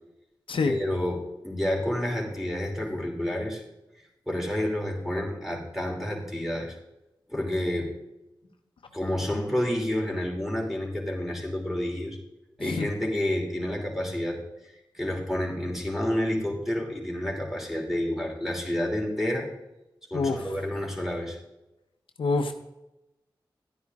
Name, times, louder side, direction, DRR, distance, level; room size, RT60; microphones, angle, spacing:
voice 1, 0.7-3.6 4.3-6.8 7.3-7.9 8.9-12.2 12.6-19.5 20.1-21.4, left 1 dB, 5° right, -1 dB, 2.9 m, -29 dB
voice 2, 20.1-20.6 22.2-22.5, left 3 dB, 90° left, 6 dB, 0.7 m, -26 dB
10.5 x 9.5 x 3.6 m, 0.94 s
cardioid pair, 45°, 9 cm